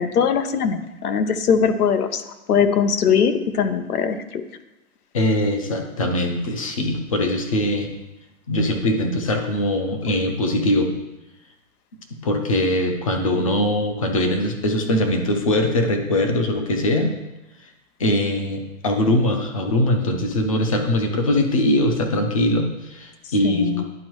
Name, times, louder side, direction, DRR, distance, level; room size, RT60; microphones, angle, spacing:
voice 1, 0.0-2.2 2.5-4.4 23.4-23.8, left 7 dB, 85° left, 10 dB, 0.9 m, -21 dB
voice 2, 5.1-7.9 8.5-10.9 12.2-17.1 18.0-23.7, left 1 dB, 25° left, 5 dB, 0.5 m, -21 dB
11.0 x 4.4 x 3.0 m, 1.0 s
hypercardioid pair, 165°, 44 cm